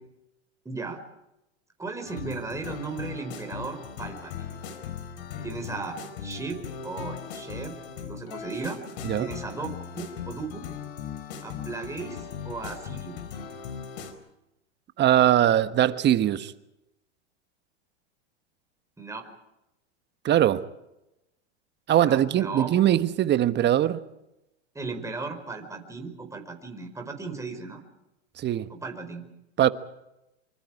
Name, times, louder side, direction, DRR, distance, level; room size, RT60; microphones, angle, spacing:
voice 1, 0.6-1.0 1.8-4.5 5.4-7.7 8.0-8.8 9.2-10.7 11.4-13.2 19.0-19.3 22.0-22.7 24.7-27.8 28.7-29.3, right 4 dB, 10° right, 4.8 m, -36 dB
sound 1, 2.1-14.1, left 7 dB, 65° left, 4.6 m, -38 dB
voice 2, 15.0-16.5 20.2-20.7 21.9-24.0 28.4-28.7 29.6-29.7, right 11 dB, 30° right, 1.3 m, -21 dB
26.0 x 25.5 x 4.9 m
hypercardioid pair, 110°, 34 cm